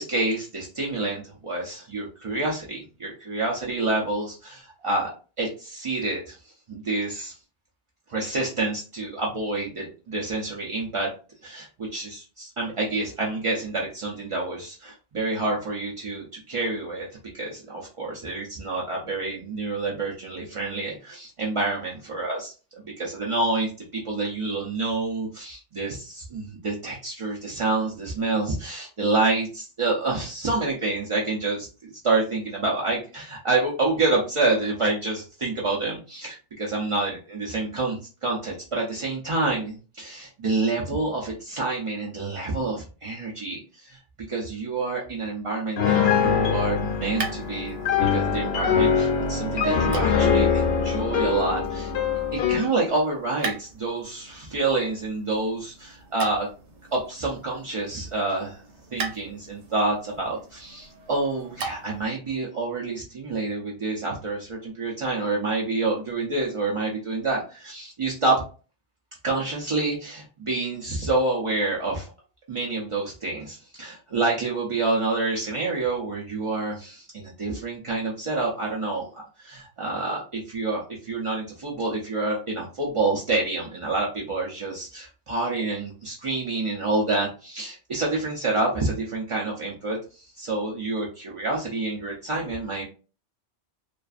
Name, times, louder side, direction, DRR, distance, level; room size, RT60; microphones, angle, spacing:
voice 1, 0.0-5.1 5.4-6.4 6.7-7.3 8.1-11.1 11.4-17.1 17.3-44.0 44.3-47.8 48.1-51.9 52.3-56.5 56.9-58.6 58.9-68.4 69.2-72.1 72.5-92.8, right 3 dB, 55° right, -3 dB, 0.3 m, -28 dB
Piano, 45.8-52.7, left 7 dB, 65° left, 0.8 m, -23 dB
sound 1, 46.5-62.1, right 4 dB, 75° right, 0.9 m, -40 dB
2.4 x 2.4 x 2.4 m, 0.35 s
omnidirectional pair, 1.2 m